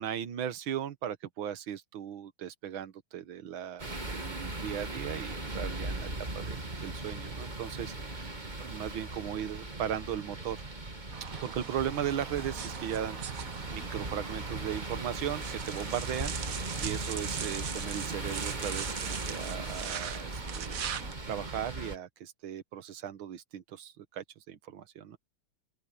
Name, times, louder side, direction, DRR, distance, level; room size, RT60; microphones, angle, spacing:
voice 1, 0.0-8.3 8.6-10.6 11.4-20.8 21.3-25.2, right 10 dB, 90° right, 1.9 m, -37 dB
sound 1, 3.8-22.0, right 2 dB, 20° right, 2.4 m, -38 dB
sound 2, 11.1-21.1, right 8 dB, 50° right, 1.2 m, -41 dB
open air
omnidirectional pair, 2.2 m